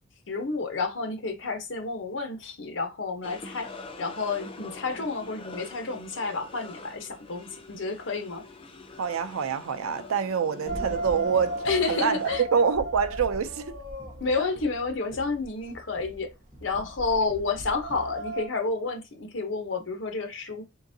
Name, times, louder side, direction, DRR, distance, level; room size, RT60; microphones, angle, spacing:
voice 1, 0.3-3.7 4.0-8.4 11.6-12.4 14.2-16.3 16.6-20.6, left 4 dB, 65° left, 0.8 m, -30 dB
sound 1, 3.2-12.4, left 2 dB, 25° left, 0.4 m, -44 dB
voice 2, 9.0-13.8 14.4-14.5 16.8-16.9, right 6 dB, 90° right, 0.5 m, -26 dB
sound 2, 10.7-18.5, right 2 dB, 40° right, 1.1 m, -36 dB
3.8 x 3.5 x 2.6 m
head